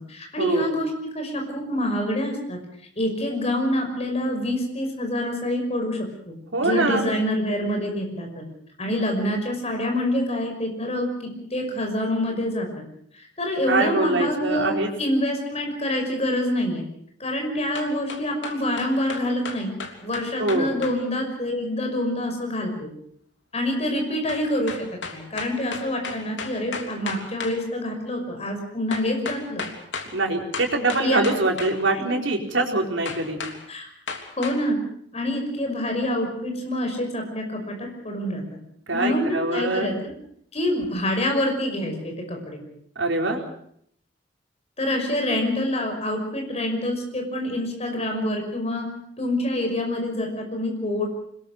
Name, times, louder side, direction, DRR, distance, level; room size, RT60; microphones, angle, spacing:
voice 1, 0.1-0.9 1.1-2.6 3.0-6.3 6.6-8.4 8.8-12.7 13.1-16.8 17.2-19.7 20.0-22.9 23.5-29.7 31.0-31.2 31.9-32.0 33.7-33.9 34.4-34.8 35.1-38.4 38.9-39.9 40.5-42.6 44.8-48.9 49.2-51.1, left 1 dB, 35° left, 2 dB, 5.8 m, -26 dB
voice 2, 6.5-7.1 13.7-14.9 20.4-20.7 30.1-33.4 38.9-39.9 43.0-43.4, right 2 dB, 80° right, 2 dB, 4.4 m, -23 dB
sound 1, 17.8-21.0 24.3-27.6 28.9-30.1 30.5-31.8 33.0-33.6 34.1-34.6, left 4 dB, 75° left, 3.3 m, -34 dB
26.0 x 21.5 x 6.6 m, 0.66 s
head